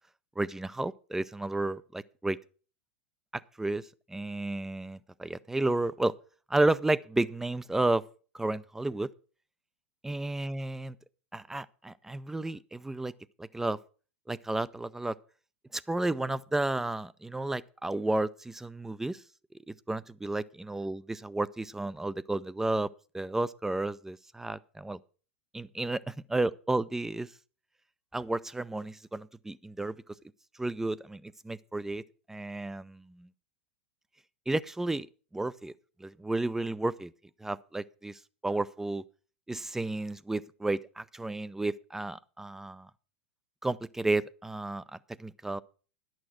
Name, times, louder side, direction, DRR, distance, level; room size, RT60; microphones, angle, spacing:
voice 1, 0.4-2.4 3.3-6.1 6.5-8.0 8.3-9.1 10.0-11.0 11.3-13.1 13.4-13.8 14.3-15.2 15.7-19.2 19.7-22.9 23.1-25.0 25.5-26.0 26.3-27.3 28.1-30.0 30.6-32.0 32.3-33.3 34.5-35.1 35.3-35.7 36.0-37.1 37.4-39.0 39.5-42.9 43.6-45.6, right 2 dB, 5° right, 0.4 m, -32 dB
11.0 x 6.5 x 6.2 m
figure-of-eight pair, 95°, 7 cm